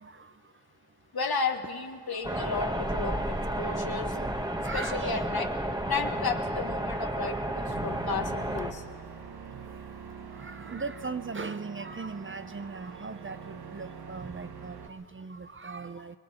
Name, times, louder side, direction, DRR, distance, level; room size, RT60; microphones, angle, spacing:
voice 1, 0.0-1.0 2.1-2.5 4.1-4.2 4.5-5.3 7.6-8.0 8.8-16.2, right 4 dB, 30° right, 12 dB, 0.6 m, -40 dB
voice 2, 1.1-4.2 4.7-5.5 5.9-8.8, left 4 dB, 70° left, 4 dB, 1.7 m, -33 dB
sound 1, 2.2-8.7, right 1 dB, 10° right, 1.3 m, -32 dB
sound 2, 7.6-14.9, right 6 dB, 70° right, 1.3 m, -44 dB
29.5 x 20.0 x 4.4 m, 2.3 s
cardioid pair, 55°, 39 cm